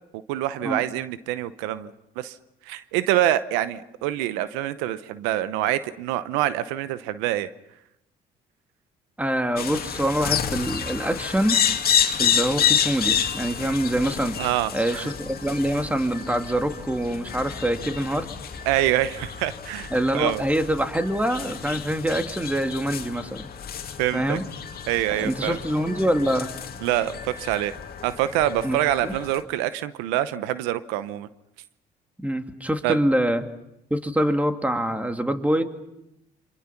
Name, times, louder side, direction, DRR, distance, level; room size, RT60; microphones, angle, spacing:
voice 1, 0.3-2.4 2.7-7.5 14.4-15.1 18.7-20.4 24.0-24.4 24.9-25.6 26.8-27.7 28.0-31.3 32.8-33.0, right 13 dB, 85° right, 14 dB, 0.8 m, -25 dB
voice 2, 9.2-11.6 12.2-14.4 14.7-18.3 19.9-23.5 24.1-24.4 25.2-26.5 28.6-29.1 32.2-33.4 33.9-35.6, right 1 dB, 10° right, 6 dB, 2.6 m, -25 dB
sound 1, 9.6-29.4, left 8 dB, 55° left, 2.5 m, -29 dB
28.0 x 26.0 x 5.9 m, 0.86 s
supercardioid pair, 65°, 19 cm